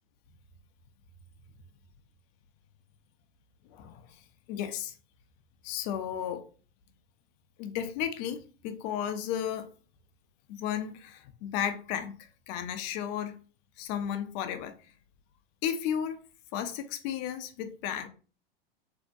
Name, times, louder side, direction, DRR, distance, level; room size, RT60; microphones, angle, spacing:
voice 1, 3.7-4.2 4.5-4.9 5.6-6.4 7.6-9.7 10.5-13.4 13.8-14.7 15.6-16.2 16.5-18.1, left 9 dB, 45° left, 0.5 m, -34 dB
2.6 x 2.1 x 2.5 m
hypercardioid pair, 95°, 30 cm